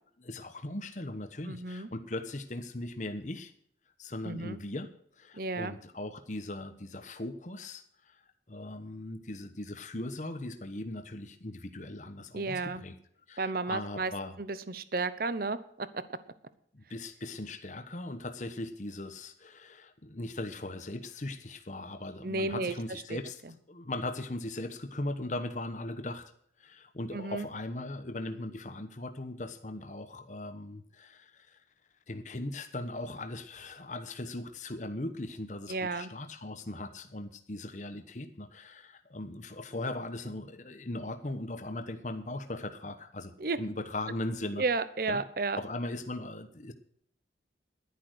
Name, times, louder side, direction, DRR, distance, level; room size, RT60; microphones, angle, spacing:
voice 1, 0.2-3.5 4.0-4.9 5.2-8.2 8.5-12.9 13.3-14.4 16.7-23.4 23.7-26.3 26.6-31.6 32.1-43.3 43.6-44.6 45.1-45.2 45.6-46.7, left 2 dB, 40° left, 7 dB, 1.1 m, -39 dB
voice 2, 1.5-1.9 4.2-4.6 5.3-5.7 12.3-12.8 13.4-14.1 14.4-16.0 22.2-23.2 27.1-27.5 35.7-36.1 43.4-43.6 44.6-45.6, right 3 dB, 50° right, 14 dB, 0.8 m, -33 dB
11.5 x 10.5 x 6.3 m, 0.63 s
head